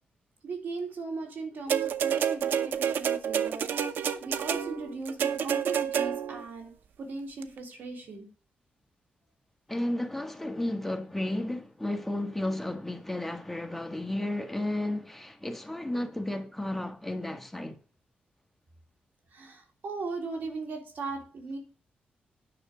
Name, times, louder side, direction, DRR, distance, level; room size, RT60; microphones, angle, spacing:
voice 1, 0.4-6.7 7.0-8.3 19.3-21.6, right 3 dB, 70° right, 3.2 m, -38 dB
sound 1, 1.7-6.4 7.4-7.5, right 8 dB, 90° right, 0.8 m, -29 dB
voice 2, 9.7-17.8, left 1 dB, 5° left, 1.6 m, -33 dB
10.0 x 6.4 x 5.0 m
cardioid pair, 105°, 3 cm